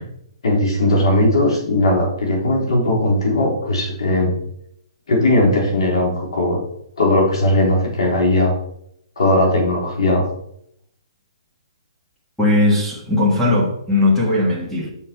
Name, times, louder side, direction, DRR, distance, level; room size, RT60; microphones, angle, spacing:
voice 1, 0.4-4.4 5.1-6.6 7.0-8.5 9.2-10.2, left 1 dB, 65° left, 3.8 m, -18 dB
voice 2, 12.4-14.9, left 2 dB, ahead, 1.4 m, -18 dB
7.2 x 6.6 x 4.5 m
hypercardioid pair, 175°, 3 cm